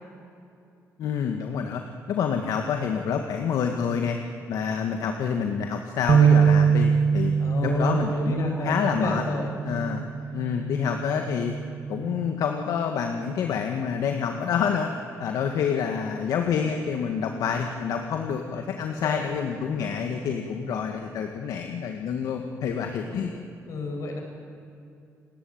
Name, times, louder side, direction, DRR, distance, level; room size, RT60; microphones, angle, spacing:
voice 1, 1.0-4.2 4.5-7.3 7.6-9.2 9.6-10.0 10.3-11.5 11.9-23.3, left 7 dB, 75° left, 4 dB, 1.9 m, -27 dB
sound 1, 6.1-12.3, right 6 dB, 45° right, 0.6 m, -24 dB
voice 2, 7.4-10.0 19.0-19.2 19.6-20.1 20.6-20.7 23.1-23.3 23.7-24.2, left 2 dB, 60° left, 2 dB, 7.6 m, -32 dB
29.5 x 19.5 x 9.0 m, 2.6 s
cardioid pair, 145°, 6 cm